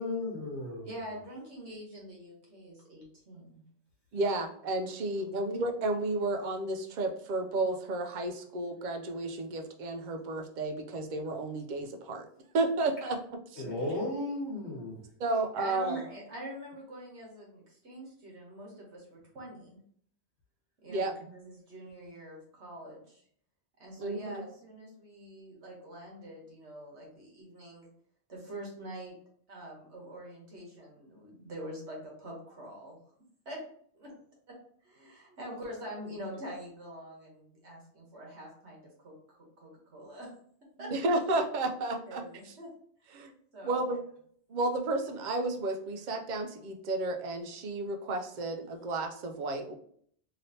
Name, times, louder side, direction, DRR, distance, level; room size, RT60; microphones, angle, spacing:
voice 1, 0.0-0.9 13.6-15.0, left 2 dB, 85° left, -4 dB, 1.3 m, -34 dB
voice 2, 0.8-3.6 5.2-5.3 15.3-19.8 20.8-23.2 23.8-27.9 28.3-29.2 29.5-33.0 33.4-33.6 33.9-34.1 34.8-40.3 40.8-40.9 42.0-42.7 43.0-43.3 43.5-44.0, right 1 dB, 75° right, -2 dB, 1.4 m, -45 dB
voice 3, 4.1-12.3 12.5-13.2 15.2-16.0 20.9-21.1 24.0-24.4 40.9-42.2 43.1-43.3 43.6-44.0 44.5-49.7, right 2 dB, 55° right, 4 dB, 0.6 m, -32 dB
3.2 x 2.8 x 2.7 m, 0.62 s
omnidirectional pair, 1.1 m